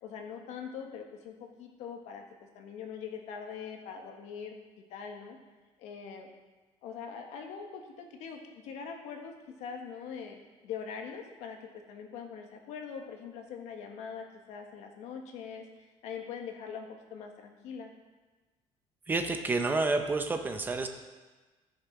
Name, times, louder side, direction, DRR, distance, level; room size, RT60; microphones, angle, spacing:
voice 1, 0.0-2.2 2.5-4.6 4.9-5.4 5.8-6.3 6.8-9.3 9.6-10.4 10.6-15.6 16.0-17.9, left 6 dB, 80° left, 3 dB, 1.6 m, -42 dB
voice 2, 19.1-20.9, right 3 dB, 15° right, 6 dB, 0.7 m, -29 dB
15.0 x 6.6 x 4.7 m, 1.2 s
cardioid pair, 175°, 11 cm